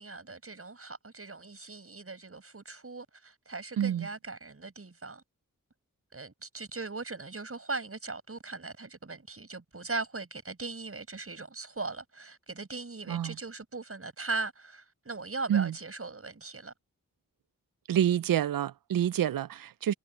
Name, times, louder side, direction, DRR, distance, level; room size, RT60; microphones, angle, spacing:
voice 1, 0.0-5.2 6.1-16.7, right 3 dB, 40° right, 7.8 m, -39 dB
voice 2, 3.8-4.1 13.1-13.4 15.5-15.7 17.9-19.9, right 10 dB, 80° right, 0.6 m, -27 dB
cardioid pair, 55°, 34 cm